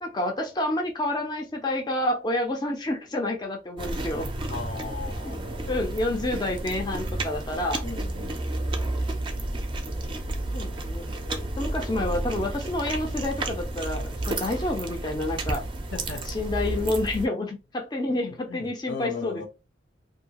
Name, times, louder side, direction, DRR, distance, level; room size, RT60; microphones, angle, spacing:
voice 1, 0.0-4.3 5.3-5.4 5.7-7.8 10.5-15.6 16.3-19.5, left 1 dB, 25° left, 0.5 m, -29 dB
sound 1, 3.8-17.3, right 2 dB, 30° right, 0.4 m, -31 dB
voice 2, 4.5-5.8 6.1-7.2 7.8-8.4 15.9-16.3 17.3-17.5 18.1-19.5, left 4 dB, 80° left, 0.9 m, -38 dB
2.7 x 2.3 x 2.8 m
head